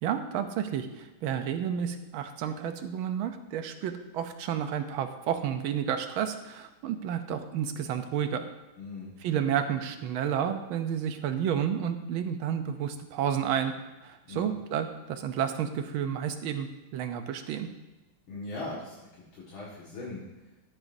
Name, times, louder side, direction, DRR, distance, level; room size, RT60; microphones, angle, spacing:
voice 1, 0.0-8.4 9.2-13.7 14.0-17.7, right 9 dB, 75° right, 8 dB, 1.5 m, -31 dB
voice 2, 8.8-9.1 14.3-14.5 18.3-19.0 19.3-20.2, left 2 dB, 70° left, -7 dB, 2.6 m, -39 dB
13.0 x 9.0 x 2.7 m, 1.0 s
omnidirectional pair, 2.3 m